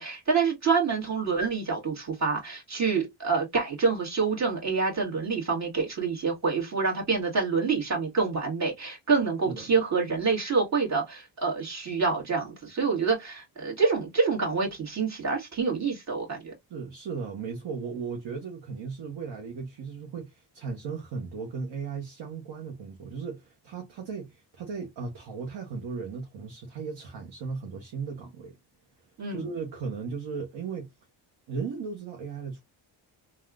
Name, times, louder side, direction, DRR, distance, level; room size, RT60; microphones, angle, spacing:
voice 1, 0.0-16.5 29.2-29.4, right 4 dB, 35° right, 1.6 m, -27 dB
voice 2, 16.7-28.6 29.3-30.9 31.5-32.6, right 5 dB, 65° right, 1.0 m, -36 dB
3.3 x 2.4 x 2.3 m
cardioid pair, 95°, 46 cm